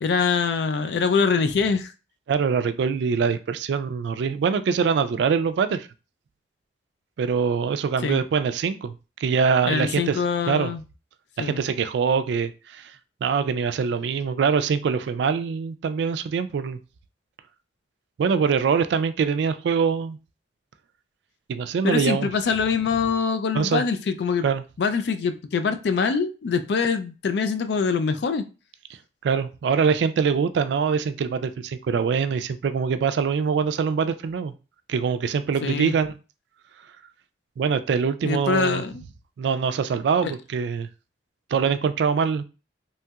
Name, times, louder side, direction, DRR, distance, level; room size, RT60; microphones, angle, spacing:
voice 1, 0.0-1.9 8.0-8.2 9.6-10.8 11.4-11.6 21.8-24.5 24.8-28.4 35.6-36.0 38.2-38.9 40.2-40.3, left 5 dB, 65° left, 0.3 m, -24 dB
voice 2, 2.3-5.9 7.2-8.9 9.2-10.2 10.5-10.7 11.4-12.9 13.2-16.8 18.2-20.2 21.5-22.3 23.5-23.8 24.4-24.6 29.2-34.5 34.9-36.1 37.6-38.8 39.4-40.9 41.5-42.4, right 6 dB, 75° right, 0.3 m, -23 dB
3.0 x 2.7 x 2.3 m
head